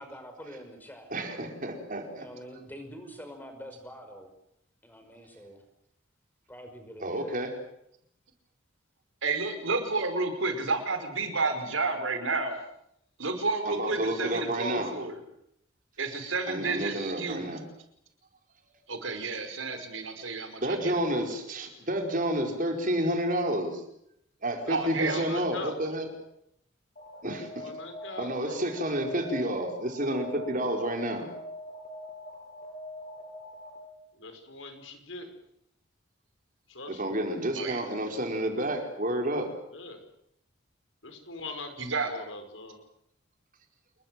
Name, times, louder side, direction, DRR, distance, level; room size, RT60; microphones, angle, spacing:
voice 1, 0.0-1.1 2.1-4.3 4.8-5.6 6.5-7.4, equal, 10° left, 6 dB, 5.5 m, -45 dB
voice 2, 1.1-2.3 7.0-7.5 13.7-14.9 16.5-17.6 20.6-23.8 24.4-26.0 27.2-27.6 28.2-31.3 37.0-39.5, right 1 dB, 40° right, 3 dB, 4.9 m, -30 dB
voice 3, 9.2-12.5 13.2-15.2 16.0-17.5 18.9-21.3 24.7-25.4 37.6-37.8 41.8-42.1, right 3 dB, 85° right, 7 dB, 5.2 m, -31 dB
voice 4, 24.6-25.8 27.2-28.7 34.1-35.3 36.7-37.2 39.7-40.0 41.0-42.8, left 2 dB, 75° left, 7 dB, 5.4 m, -42 dB
Alarm, 27.0-34.0, left 1 dB, 40° left, 7.6 m, -43 dB
28.5 x 22.0 x 7.8 m, 0.76 s
head